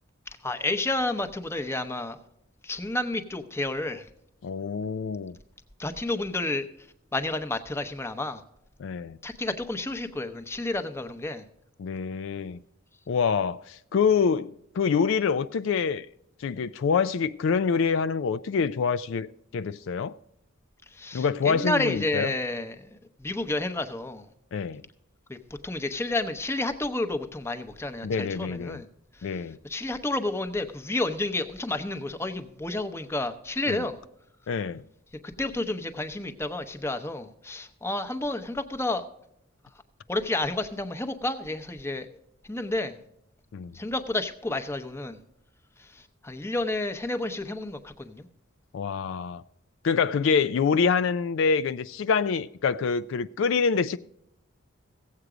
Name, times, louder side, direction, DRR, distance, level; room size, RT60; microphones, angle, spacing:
voice 1, 0.3-2.2 2.6-4.1 5.8-6.6 7.1-8.4 9.2-11.4 20.9-24.2 25.3-25.4 25.6-28.9 29.2-34.0 35.4-39.0 40.1-42.1 42.5-43.0 43.7-45.2 45.8-48.3, left 2 dB, 10° left, 0.8 m, -30 dB
voice 2, 4.4-5.3 8.8-9.2 11.8-12.6 13.1-16.1 16.4-19.3 19.5-20.1 21.1-22.3 24.5-24.8 28.0-28.8 29.2-29.6 33.7-33.8 34.5-34.8 43.5-43.7 48.7-49.4 49.8-54.0, left 5 dB, 65° left, 0.3 m, -26 dB
16.5 x 8.0 x 4.9 m
head